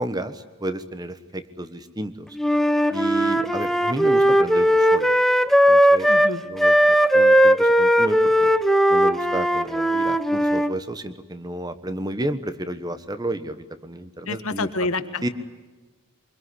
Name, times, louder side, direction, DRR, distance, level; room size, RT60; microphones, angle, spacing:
voice 1, 0.0-2.3 2.9-5.1 5.7-6.1 6.5-8.5 8.9-13.6 13.8-14.7 15.2-15.3, right 1 dB, 20° right, 11 dB, 1.3 m, -31 dB
Wind instrument woodwind instrument, 2.4-10.7, equal, ahead, 0.8 m, -18 dB
voice 2, 6.1-6.4 14.3-15.2, left 3 dB, 70° left, 9 dB, 1.6 m, -28 dB
24.5 x 23.0 x 9.8 m, 1.3 s
head